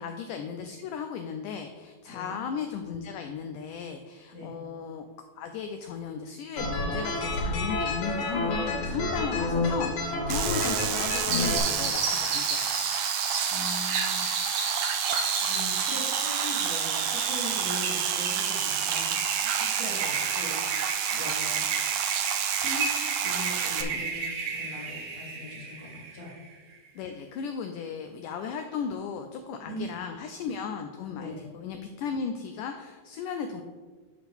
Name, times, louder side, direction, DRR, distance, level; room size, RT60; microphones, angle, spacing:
voice 1, 0.0-5.0 5.4-13.0 15.4-15.5 21.2-21.4 23.8-24.0 26.9-33.6, left 6 dB, 85° left, 6 dB, 1.8 m, -36 dB
sound 1, 6.6-11.6, left 2 dB, 70° left, 3.6 m, -29 dB
sound 2, 10.3-23.8, right 9 dB, 80° right, 2.1 m, -29 dB
sound 3, 11.3-26.5, right 4 dB, 60° right, 2.4 m, -33 dB
voice 2, 13.5-14.2 15.4-20.6 21.1-21.6 22.5-22.9 23.2-24.2 24.5-26.3 29.6-30.0 31.1-31.4, left 2 dB, 35° left, -5 dB, 1.4 m, -40 dB
10.5 x 6.1 x 3.5 m, 1.4 s
omnidirectional pair, 4.3 m